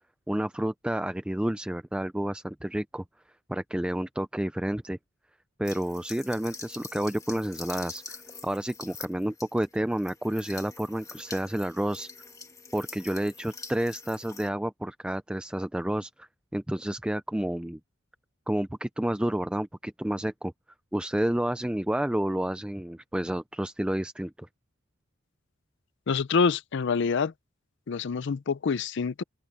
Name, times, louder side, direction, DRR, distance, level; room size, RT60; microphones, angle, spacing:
voice 1, 0.3-3.0 3.5-5.0 5.6-12.1 12.7-17.8 18.5-20.5 20.9-24.5, right 1 dB, 5° right, 0.3 m, -30 dB
sound 1, 5.6-14.5, left 4 dB, 15° left, 1.7 m, -45 dB
voice 2, 26.1-27.3 27.9-29.2, left 5 dB, 60° left, 0.5 m, -26 dB
open air
head